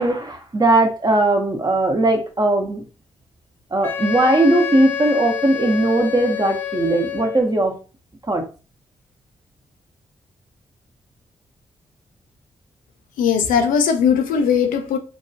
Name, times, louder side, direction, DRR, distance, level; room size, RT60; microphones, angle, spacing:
voice 1, 0.0-2.8 3.7-7.8 8.3-8.4, right 2 dB, 30° right, 0.9 m, -18 dB
Wind instrument woodwind instrument, 3.8-7.6, left 10 dB, 15° left, 0.6 m, -28 dB
voice 2, 13.2-15.0, left 7 dB, 85° left, 0.4 m, -18 dB
2.8 x 2.3 x 2.7 m
supercardioid pair, 45°, 14 cm